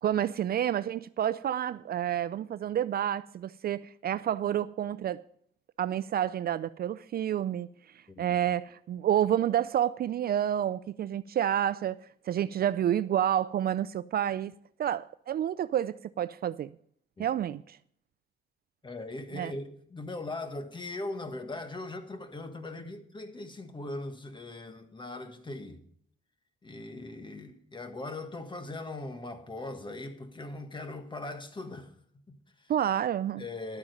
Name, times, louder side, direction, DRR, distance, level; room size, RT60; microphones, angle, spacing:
voice 1, 0.0-5.2 5.8-7.7 8.2-12.0 12.3-14.5 14.8-16.7 17.2-17.8 19.3-19.5 32.7-33.4, right 10 dB, 50° right, 0.4 m, -29 dB
voice 2, 18.8-25.8 26.6-31.9 32.3-32.7 33.4-33.8, left 2 dB, 25° left, 1.6 m, -40 dB
12.0 x 8.7 x 5.2 m
cardioid pair, 90°, 20 cm